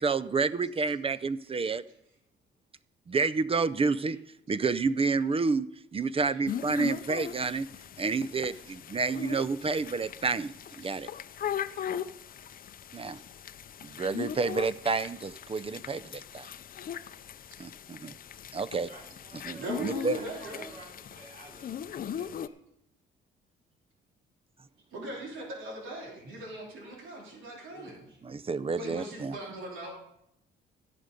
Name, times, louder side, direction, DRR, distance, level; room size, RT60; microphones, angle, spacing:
voice 1, 0.0-1.8 3.1-4.2 4.5-7.7 8.0-11.1 12.9-13.2 13.8-16.5 18.0-18.2 18.5-18.9 19.5-20.2 28.2-29.4, right 4 dB, 30° right, 16 dB, 0.5 m, -29 dB
sound 1, 6.5-22.5, left 9 dB, 45° left, 0.5 m, -39 dB
voice 2, 18.8-19.8 20.1-21.9 22.2-22.6 27.7-28.0, right 1 dB, 45° right, -3 dB, 5.2 m, -51 dB
voice 3, 19.6-20.7 24.9-28.0 28.8-29.9, right 1 dB, 80° right, -2 dB, 3.2 m, -39 dB
15.5 x 6.8 x 5.1 m, 0.80 s
cardioid pair, 90°, 20 cm